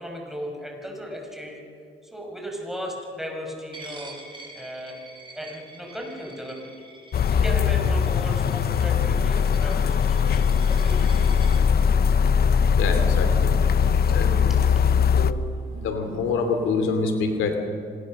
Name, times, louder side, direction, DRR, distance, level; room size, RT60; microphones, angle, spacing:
voice 1, 0.0-1.6 2.1-4.1 4.5-5.0 5.3-6.7 7.3-10.4 10.7-11.2 14.0-14.1, equal, ahead, 0 dB, 6.0 m, -36 dB
Coin (dropping), 3.7-11.6, right 2 dB, 25° right, 4.9 m, -46 dB
sound 1, 7.1-15.3, left 6 dB, 50° left, 0.8 m, -20 dB
voice 2, 12.7-13.5 14.1-14.5 15.1-15.4 15.7-17.6, left 4 dB, 85° left, 6 dB, 2.8 m, -26 dB
26.0 x 20.0 x 6.6 m, 2.3 s
cardioid pair, 90°, 20 cm